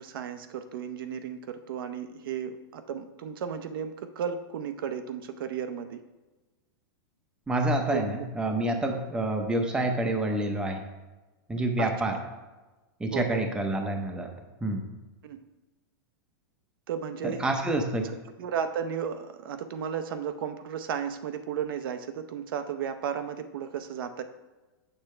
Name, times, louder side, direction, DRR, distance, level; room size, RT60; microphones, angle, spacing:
voice 1, 0.0-6.0 7.9-8.1 11.8-12.2 13.1-13.4 15.2-15.4 16.9-17.4 18.0-24.2, right 8 dB, 70° right, 9 dB, 0.6 m, -34 dB
voice 2, 7.5-10.8 11.5-12.2 13.0-14.3 14.6-14.8 17.4-18.1, right 1 dB, 5° right, 4 dB, 0.7 m, -28 dB
7.8 x 6.7 x 3.2 m, 1.2 s
supercardioid pair, 150°, 12 cm